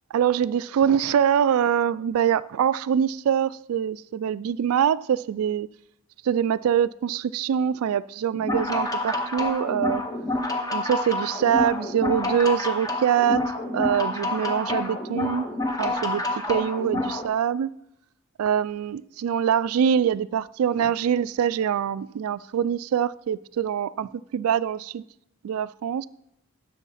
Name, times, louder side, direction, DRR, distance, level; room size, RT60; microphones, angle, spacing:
voice 1, 0.1-5.7 6.2-10.0 10.7-13.4 13.7-15.5 15.8-16.2 16.5-17.7 18.4-25.0 25.4-26.1, right 8 dB, 90° right, 0.3 m, -24 dB
sound 1, 8.4-17.2, left 2 dB, 15° left, 0.7 m, -28 dB
11.0 x 6.5 x 4.1 m
head